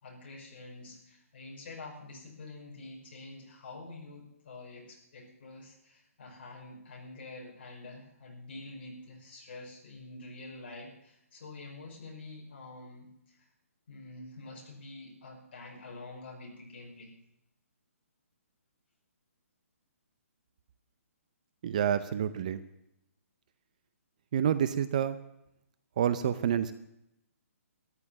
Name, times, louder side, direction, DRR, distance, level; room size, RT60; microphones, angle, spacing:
voice 1, 0.0-13.5 13.9-17.1, left 2 dB, 40° left, -1 dB, 5.6 m, -47 dB
voice 2, 21.6-22.6 24.3-25.2 26.0-26.7, right 9 dB, 30° right, 13 dB, 0.6 m, -28 dB
13.5 x 12.5 x 7.2 m, 0.82 s
hypercardioid pair, 170°, 8 cm